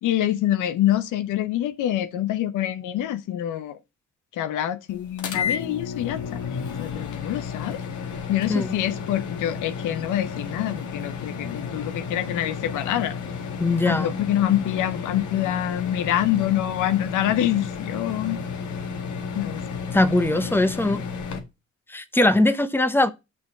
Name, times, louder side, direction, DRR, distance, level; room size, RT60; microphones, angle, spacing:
voice 1, 0.0-3.8 4.3-6.2 6.8-7.8 8.3-13.1 13.9-18.4 19.3-19.6, left 12 dB, 90° left, 0.8 m, -26 dB
sound 1, 5.2-21.4, left 6 dB, 75° left, 1.8 m, -32 dB
voice 2, 13.6-14.1 19.9-21.0 21.9-23.1, left 2 dB, 5° left, 1.0 m, -21 dB
6.6 x 5.0 x 5.7 m
cardioid pair, 90°, 30 cm